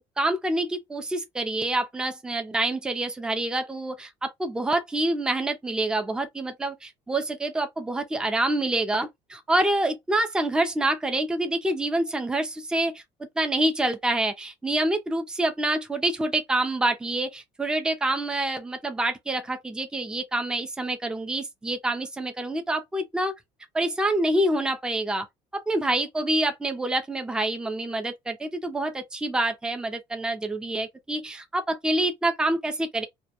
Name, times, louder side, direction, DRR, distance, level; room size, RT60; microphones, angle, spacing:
voice 1, 0.0-13.0 13.4-23.3 23.7-25.3 25.5-33.1, right 1 dB, 5° right, 0.4 m, -27 dB
2.2 x 2.1 x 2.8 m
cardioid pair, 135°, 12 cm